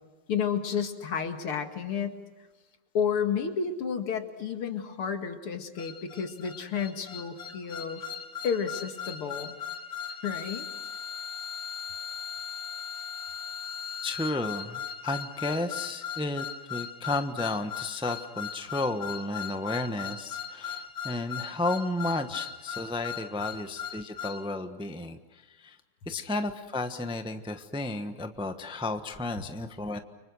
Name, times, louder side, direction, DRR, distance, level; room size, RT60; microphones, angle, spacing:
voice 1, 0.3-2.2 2.9-8.0 8.4-9.6 10.2-10.7, left 7 dB, 85° left, 6 dB, 2.8 m, -31 dB
sound 1, 5.8-24.4, left 7 dB, 30° left, 2.0 m, -38 dB
voice 2, 14.0-25.8 26.1-30.0, left 2 dB, 5° right, 7 dB, 0.7 m, -33 dB
30.0 x 25.0 x 6.3 m, 1.2 s
omnidirectional pair, 2.4 m